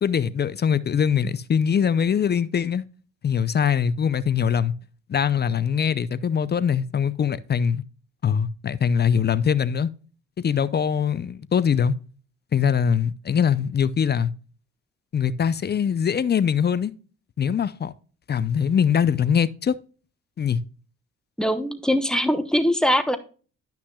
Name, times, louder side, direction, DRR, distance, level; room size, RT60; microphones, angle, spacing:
voice 1, 0.0-2.8 3.2-4.7 5.1-7.8 8.2-9.9 10.4-12.0 12.5-14.3 15.1-16.9 17.4-17.9 18.3-19.8 20.4-20.6, left 7 dB, 35° left, 0.5 m, -22 dB
voice 2, 21.4-23.2, equal, ahead, 1.0 m, -22 dB
11.5 x 5.8 x 2.3 m
cardioid pair, 90°, 30 cm